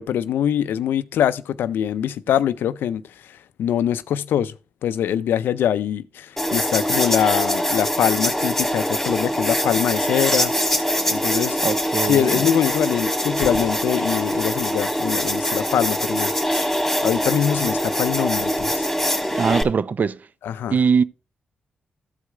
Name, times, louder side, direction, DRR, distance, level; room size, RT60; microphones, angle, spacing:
voice 1, 0.0-4.5 4.8-10.5 11.1-11.6 12.0-16.7 17.0-18.9 19.3-19.4 20.4-20.8, left 10 dB, 90° left, 0.4 m, -23 dB
sound 1, 6.4-19.6, equal, 5° left, 2.1 m, -23 dB
voice 2, 11.6-12.3 19.3-20.2 20.7-21.0, right 6 dB, 55° right, 0.5 m, -21 dB
14.5 x 4.9 x 3.3 m
cardioid pair, 60°, 3 cm